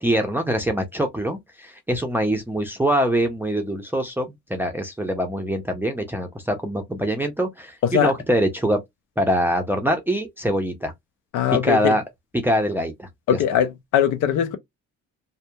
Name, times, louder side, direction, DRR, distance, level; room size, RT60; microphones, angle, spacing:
voice 1, 0.0-8.8 9.2-10.9 11.6-12.0 12.3-13.4, equal, 5° right, 0.5 m, -24 dB
voice 2, 11.3-11.9 13.3-14.6, left 9 dB, 90° left, 0.5 m, -21 dB
2.8 x 2.1 x 2.2 m
cardioid pair, 90°, 30 cm